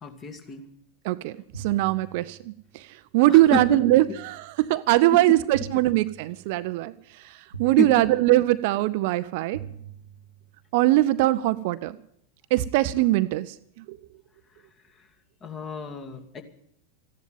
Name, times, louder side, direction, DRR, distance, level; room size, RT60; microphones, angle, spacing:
voice 1, 0.0-0.7 3.2-4.2 5.1-5.4 7.8-8.0 15.0-15.1 15.4-16.4, left 2 dB, 25° left, 7 dB, 2.1 m, -31 dB
voice 2, 1.0-2.8 3.1-6.9 7.6-9.6 10.7-12.0 12.5-14.0, right 16 dB, 50° right, 14 dB, 0.6 m, -21 dB
sound 1, 1.5-2.7 3.5-4.7 5.5-6.7 7.5-8.7 9.5-10.7, right 8 dB, 85° right, 1.3 m, -42 dB
14.5 x 10.5 x 9.2 m, 0.70 s
figure-of-eight pair, 90°, 0 cm